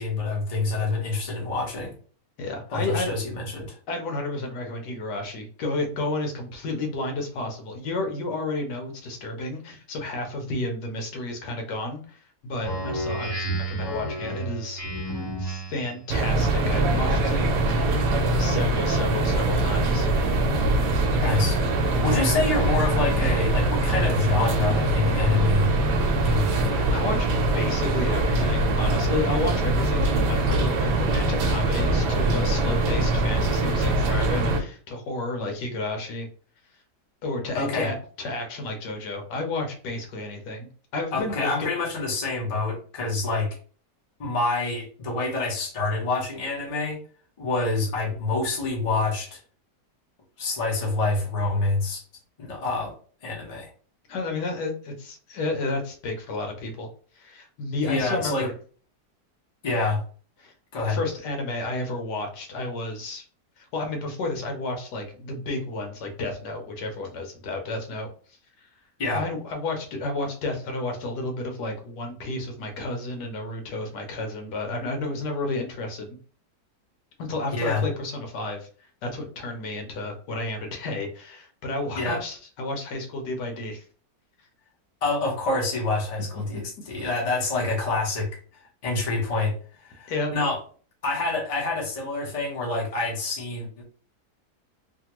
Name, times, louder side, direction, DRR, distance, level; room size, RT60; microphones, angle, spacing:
voice 1, 0.0-1.9 2.7-3.8 21.2-25.7 26.1-26.9 37.5-37.9 41.1-43.6 44.2-47.0 47.4-49.4 50.4-52.0 52.4-52.9 53.2-53.7 57.8-58.5 59.6-60.0 60.7-61.0 69.0-69.2 77.5-77.8 81.9-82.2 85.0-88.3 88.8-89.6 89.8-90.6 91.0-93.8, left 3 dB, 30° left, -2 dB, 0.7 m, -27 dB
voice 2, 2.4-3.1 3.9-14.8 15.4-17.4 18.4-20.1 26.9-36.3 37.2-40.7 40.9-41.5 54.1-56.9 57.1-58.5 60.4-60.5 60.8-63.2 63.6-68.1 68.6-68.7 69.1-76.2 77.2-78.7 79.0-83.8 86.5-86.6 90.1-90.3, left 2 dB, 80° left, 3 dB, 1.4 m, -31 dB
Speech synthesizer, 12.6-16.0, right 1 dB, 15° left, 1.2 m, -31 dB
sound 1, 16.1-34.6, right 2 dB, 80° right, 1.3 m, -23 dB
3.3 x 2.2 x 2.9 m, 0.42 s
omnidirectional pair, 1.8 m